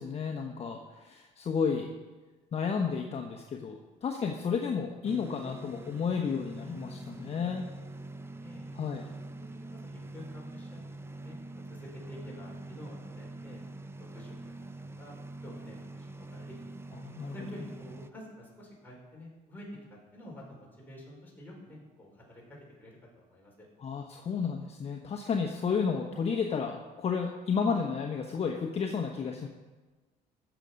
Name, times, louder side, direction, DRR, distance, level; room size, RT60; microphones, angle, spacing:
voice 1, 0.0-1.9 2.5-7.7 8.7-9.1 16.9-17.3 23.8-29.5, left 6 dB, 40° left, 2 dB, 1.1 m, -32 dB
sound 1, 5.0-18.1, right 2 dB, 15° right, 0.6 m, -44 dB
voice 2, 9.4-11.4 11.6-13.7 13.9-16.5 17.3-23.7, left 1 dB, 10° left, -4 dB, 4.6 m, -49 dB
15.0 x 7.0 x 5.3 m, 1.3 s
cardioid pair, 110°, 17 cm